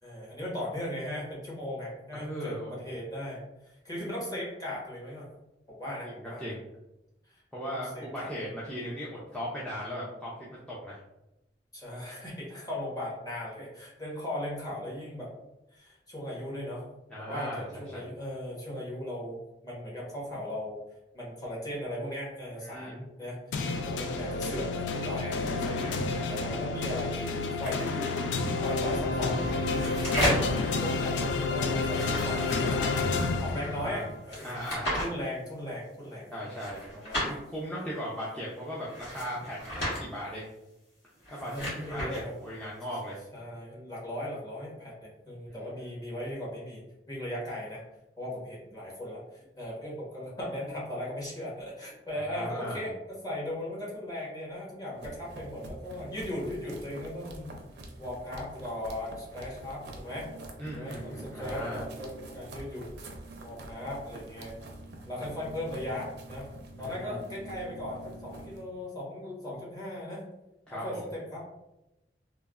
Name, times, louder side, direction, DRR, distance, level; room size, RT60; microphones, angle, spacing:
voice 1, 0.0-5.3 5.7-6.4 7.3-7.4 7.7-8.5 11.7-15.3 15.7-16.8 17.2-20.8 21.1-28.2 28.6-30.0 30.4-34.6 35.0-36.4 36.9-37.2 41.5-42.3 43.3-47.8 48.2-57.6 58.0-60.3 60.7-62.9 63.4-64.6 65.1-66.5 66.8-70.2 70.7-71.4, left 1 dB, 20° left, -5 dB, 0.9 m, -38 dB
voice 2, 2.1-2.9 6.0-6.6 7.5-11.0 17.1-17.6 17.9-18.1 22.6-23.0 33.6-34.1 34.4-34.9 36.3-40.5 41.3-43.2 52.1-52.8 60.6-61.8 66.8-67.2 70.7-71.0, equal, 5° left, -7 dB, 0.4 m, -38 dB
sound 1, 23.5-34.1, left 3 dB, 85° left, 0.3 m, -30 dB
sound 2, 27.6-28.1 29.3-30.6 31.8-33.1 34.3-35.1 36.5-37.3 38.8-40.0 41.1-42.2, equal, 70° left, 1.3 m, -33 dB
sound 3, 54.9-68.6, right 2 dB, 70° right, 0.5 m, -45 dB
3.1 x 2.0 x 2.3 m, 0.93 s
head